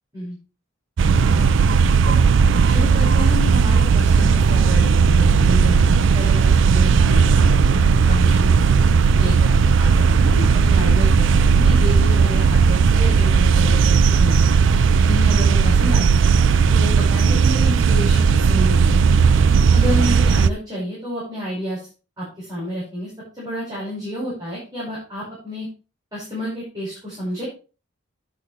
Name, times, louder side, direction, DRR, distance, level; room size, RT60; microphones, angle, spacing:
voice 1, 1.0-1.5 2.1-2.2 2.6-7.4 7.7-8.6 9.2-14.4 15.0-16.1 16.7-19.0 19.7-21.8 22.2-25.7 26.1-27.5, equal, 20° right, -8 dB, 5.5 m, -30 dB
sound 1, 1.0-20.5, right 5 dB, 70° right, 0.4 m, -15 dB
10.5 x 8.3 x 3.3 m, 0.33 s
head